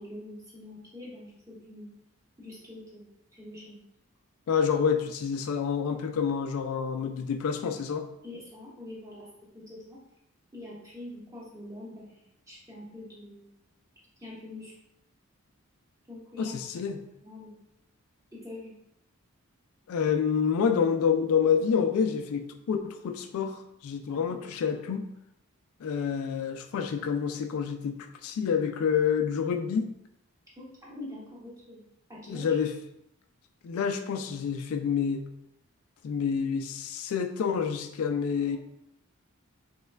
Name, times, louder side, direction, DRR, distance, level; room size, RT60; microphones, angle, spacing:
voice 1, 0.0-1.9 2.4-3.9 8.2-9.3 9.5-10.0 10.5-13.5 14.2-14.7 16.1-16.5 17.2-17.6 18.3-18.7 24.1-24.3 30.6-31.8 32.1-32.6 38.3-38.6, left 1 dB, 15° right, -6 dB, 0.8 m, -44 dB
voice 2, 4.5-8.1 16.4-17.0 19.9-25.1 25.8-29.9 32.3-32.7 33.6-35.3 36.0-38.6, left 6 dB, 75° left, 7 dB, 0.3 m, -28 dB
3.1 x 2.2 x 3.3 m, 0.79 s
head